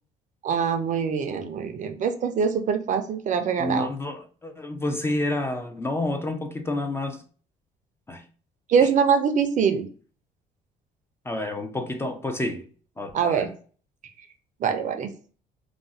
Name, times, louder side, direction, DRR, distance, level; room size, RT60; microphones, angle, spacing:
voice 1, 0.4-3.9 8.7-9.9 13.1-13.5 14.6-15.1, right 6 dB, 50° right, 0.5 m, -23 dB
voice 2, 3.6-7.2 8.1-8.2 8.8-8.9 11.3-12.6 13.0-13.5, left 2 dB, 15° left, 0.4 m, -29 dB
2.4 x 2.0 x 3.8 m
cardioid pair, 110°, 17 cm